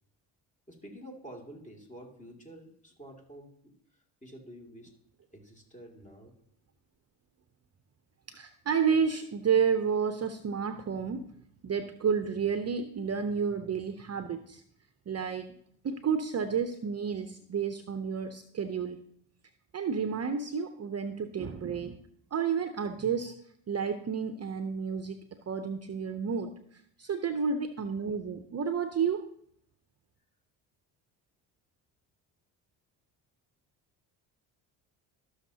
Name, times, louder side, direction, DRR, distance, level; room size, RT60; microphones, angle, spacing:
voice 1, 0.7-4.9 5.3-6.3 27.0-27.4, right 1 dB, 15° left, 1 dB, 2.5 m, -49 dB
voice 2, 8.3-11.3 11.6-14.6 15.1-15.6 15.8-19.0 19.7-22.0 22.3-23.3 23.7-25.2 25.5-29.3, right 6 dB, 35° right, 8 dB, 0.7 m, -31 dB
13.0 x 6.4 x 2.8 m, 0.68 s
supercardioid pair, 60°, 48 cm